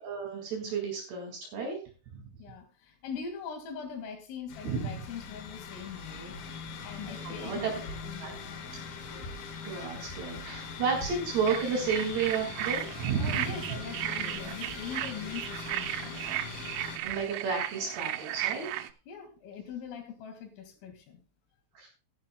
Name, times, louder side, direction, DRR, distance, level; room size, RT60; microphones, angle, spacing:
voice 1, 0.0-1.8 4.7-4.8 7.3-7.7 8.2-8.3 9.1-9.3 9.6-13.4 17.0-18.7 21.8-21.9, right 5 dB, 60° right, 1 dB, 3.8 m, -32 dB
voice 2, 2.4-6.4 6.8-8.6 13.2-16.2 19.1-21.2, left 6 dB, 80° left, 6 dB, 4.6 m, -42 dB
sound 1, 4.5-17.0, left 5 dB, 60° left, 3.1 m, -41 dB
sound 2, 11.5-18.9, right 14 dB, 80° right, 2.9 m, -35 dB
17.0 x 11.0 x 2.2 m, 0.33 s
omnidirectional pair, 5.8 m